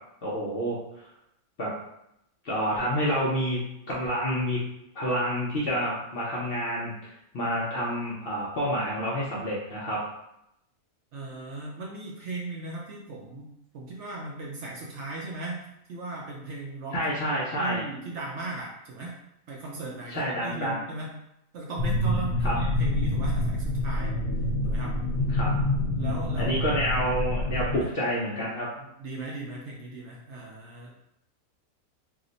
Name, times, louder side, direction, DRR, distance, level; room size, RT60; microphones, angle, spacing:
voice 1, 0.2-1.1 1.6-1.7 2.4-3.6 3.9-4.6 4.9-10.0 16.9-17.8 20.1-20.8 22.4-22.5 25.3-25.5 26.4-28.7, equal, 60° left, -6 dB, 0.6 m, -28 dB
voice 2, 11.1-17.0 17.3-19.1 19.5-21.1 21.5-24.2 24.6-24.9 26.0-26.7 27.8-27.9 28.8-30.9, right 3 dB, 65° right, -3 dB, 0.8 m, -37 dB
sound 1, 21.8-27.8, left 1 dB, 80° left, 1.0 m, -27 dB
2.8 x 2.1 x 3.8 m, 0.82 s
omnidirectional pair, 1.5 m